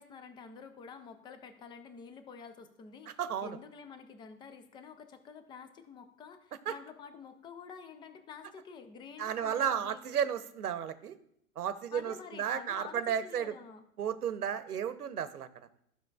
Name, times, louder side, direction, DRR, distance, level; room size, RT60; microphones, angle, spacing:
voice 1, 0.0-10.0 11.9-13.8, left 6 dB, 10° left, 9 dB, 0.4 m, -49 dB
voice 2, 3.1-3.6 6.7-6.8 9.2-11.2 11.6-13.5 14.0-15.5, right 8 dB, 85° right, 12 dB, 0.9 m, -33 dB
12.5 x 5.9 x 2.4 m, 0.73 s
hypercardioid pair, 110°, 44 cm